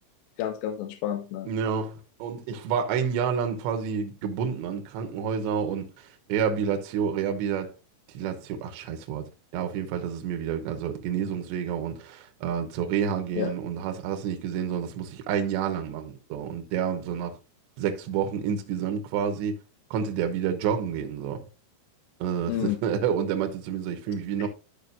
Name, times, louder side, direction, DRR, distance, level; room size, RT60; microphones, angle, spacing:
voice 1, 0.4-1.5 13.4-13.5 22.5-22.8 24.4-24.5, left 11 dB, 85° left, 3.3 m, -30 dB
voice 2, 1.5-7.7 8.1-17.4 17.8-19.6 19.9-21.4 22.2-24.5, right 7 dB, 75° right, 2.9 m, -29 dB
13.5 x 4.9 x 2.6 m
omnidirectional pair, 5.9 m